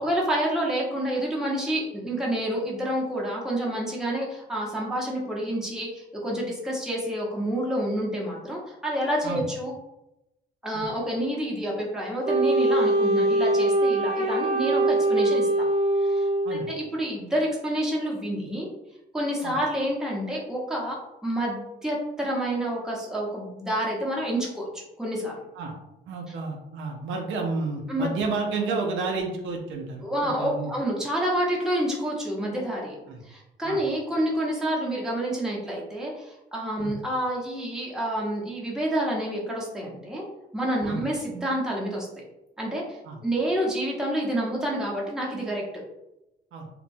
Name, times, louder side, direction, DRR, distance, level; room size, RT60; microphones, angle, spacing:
voice 1, 0.0-9.7 10.6-15.5 16.0-18.7 19.1-20.9 21.2-24.7 25.0-25.4 27.9-28.1 30.0-33.0 33.2-40.2 40.5-42.1 42.6-45.6, right 1 dB, 5° right, -4 dB, 0.8 m, -28 dB
Wind instrument woodwind instrument, 12.2-16.9, right 2 dB, 35° right, 0.8 m, -23 dB
voice 2, 26.1-30.7 33.1-33.2 33.6-33.8 36.8-36.9 40.8-41.1 43.1-43.2 46.5-46.7, right 4 dB, 80° right, 1 dB, 0.6 m, -31 dB
2.9 x 2.1 x 2.6 m, 0.93 s
cardioid pair, 90°, 20 cm